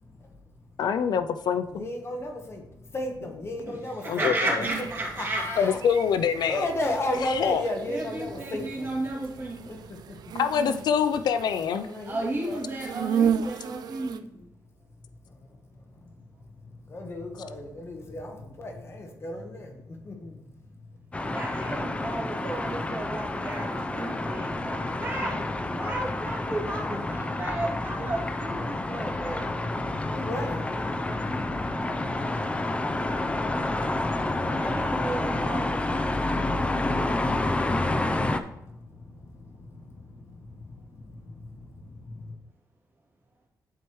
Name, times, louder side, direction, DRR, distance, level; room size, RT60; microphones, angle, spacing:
voice 1, 0.0-0.4 1.7-4.3 5.2-5.8 6.5-8.9 9.7-10.3 11.6-12.6 15.3-16.1 16.7-20.5 22.6-22.7 24.3-24.4 24.8-25.5 26.6-27.2 28.6-35.3 35.6-42.3, left 1 dB, 35° left, 2 dB, 1.2 m, -37 dB
voice 2, 0.8-1.9 4.1-4.6 5.6-6.7 7.2-7.6 10.4-11.9, left 7 dB, 75° left, 10 dB, 0.4 m, -25 dB
voice 3, 3.7-5.4 7.9-9.8 12.1-14.5 21.2-29.6 34.6-36.2, right 2 dB, 35° right, -4 dB, 2.6 m, -34 dB
sound 1, 4.6-14.2, right 8 dB, 70° right, 0.4 m, -34 dB
sound 2, 21.1-38.4, left 2 dB, 15° left, 0.5 m, -29 dB
11.0 x 4.6 x 3.1 m, 0.83 s
cardioid pair, 115°, 7 cm